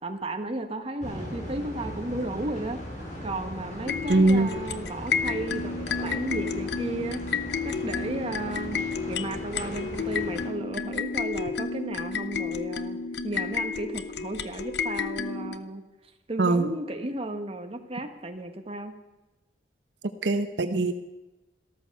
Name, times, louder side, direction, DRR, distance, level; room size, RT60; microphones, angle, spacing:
voice 1, 0.0-2.8 3.2-7.2 7.6-8.8 9.1-15.8 16.3-18.9, right 2 dB, 35° right, 5 dB, 1.4 m, -34 dB
sound 1, 1.0-10.5, equal, 45° left, 4.8 m, -39 dB
sound 2, 3.9-15.6, left 5 dB, 65° left, 0.8 m, -31 dB
voice 2, 4.1-4.5 16.4-16.7 20.0-20.9, right 2 dB, 70° right, 8 dB, 0.9 m, -22 dB
14.0 x 13.5 x 6.5 m, 1.0 s
head